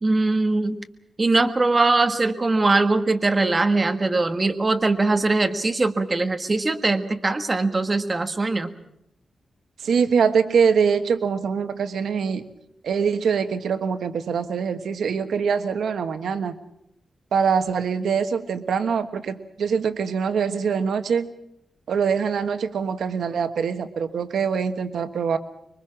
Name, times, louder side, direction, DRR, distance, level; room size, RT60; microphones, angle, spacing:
voice 1, 0.0-0.8 1.2-8.7, right 3 dB, 25° right, 7 dB, 1.6 m, -21 dB
voice 2, 9.8-12.4 12.8-16.5 17.3-21.3 21.9-25.4, right 6 dB, 90° right, 9 dB, 1.3 m, -23 dB
25.5 x 23.5 x 6.1 m, 0.81 s
wide cardioid pair, 140°, 0 cm